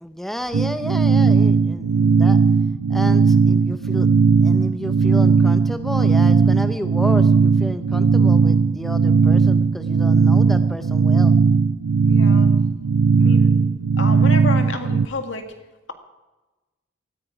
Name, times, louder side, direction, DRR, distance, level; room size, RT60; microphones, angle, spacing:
voice 1, 0.0-2.4 2.9-4.1 4.4-11.4, equal, ahead, 9 dB, 0.5 m, -31 dB
sound 1, 0.5-15.1, right 5 dB, 60° right, 0.4 m, -17 dB
voice 2, 12.0-12.5 13.2-13.5 14.0-15.4, left 3 dB, 70° left, 6 dB, 1.9 m, -29 dB
18.5 x 14.0 x 5.0 m, 1.1 s
head